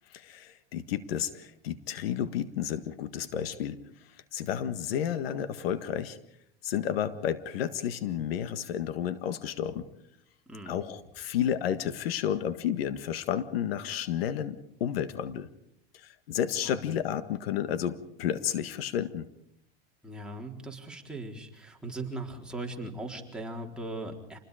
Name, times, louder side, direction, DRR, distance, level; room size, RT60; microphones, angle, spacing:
voice 1, 0.1-3.8 4.3-6.2 6.6-9.8 10.7-15.5 15.9-19.3, left 9 dB, 75° left, 11 dB, 1.8 m, -31 dB
voice 2, 20.0-24.4, right 2 dB, 5° right, -1 dB, 4.1 m, -39 dB
28.5 x 20.5 x 5.1 m, 0.72 s
supercardioid pair, 125°, 30 cm